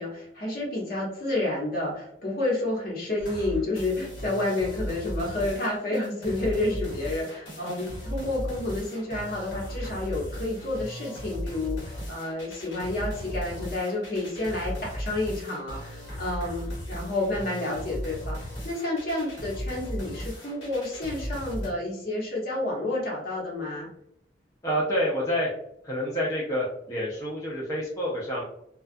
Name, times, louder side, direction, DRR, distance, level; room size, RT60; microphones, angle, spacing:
voice 1, 0.0-23.9, left 2 dB, 55° left, -4 dB, 1.0 m, -30 dB
sound 1, 3.2-21.7, equal, 80° left, 1.0 m, -37 dB
voice 2, 24.6-25.5 25.8-28.4, equal, 20° left, -6 dB, 0.4 m, -28 dB
2.3 x 2.2 x 2.5 m, 0.74 s
head